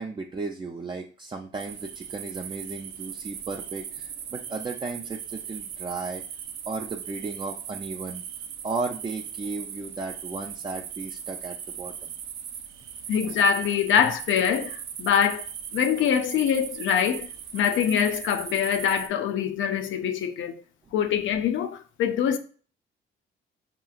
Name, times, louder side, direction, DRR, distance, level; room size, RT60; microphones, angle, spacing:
voice 1, 0.0-6.2 6.7-8.2 8.6-12.1, right 3 dB, 25° right, 0.4 m, -35 dB
sound 1, 1.5-19.1, right 8 dB, 85° right, 0.5 m, -38 dB
voice 2, 13.1-15.5 15.7-17.3 17.5-20.5 20.9-22.4, left 8 dB, 75° left, 0.5 m, -24 dB
4.8 x 3.0 x 2.4 m
cardioid pair, 90°, 20 cm